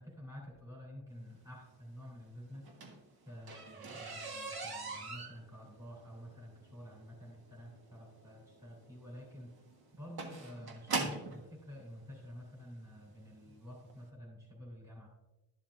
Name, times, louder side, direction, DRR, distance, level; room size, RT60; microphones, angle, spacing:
voice 1, 0.0-2.7 3.3-9.7 9.9-15.1, equal, 5° right, -4 dB, 3.2 m, -50 dB
sound 1, 2.5-11.4 12.3-12.4 13.0-13.2 13.5-13.6 13.9-14.0, right 3 dB, 50° right, 1.5 m, -41 dB
12.5 x 7.1 x 2.6 m, 1.0 s
cardioid pair, 110°, 46 cm